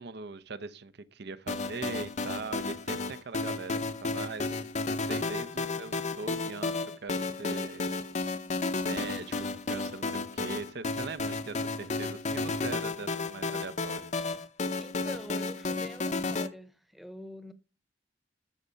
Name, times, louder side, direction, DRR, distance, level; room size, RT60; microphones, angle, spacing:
voice 1, 0.0-4.5 5.1-6.8 7.0-7.9 8.8-14.1, right 4 dB, 60° right, 0.8 m, -41 dB
sound 1, 1.5-16.5, left 3 dB, 40° left, 0.7 m, -33 dB
voice 2, 14.8-17.5, equal, ahead, 0.9 m, -45 dB
13.5 x 5.6 x 5.2 m
head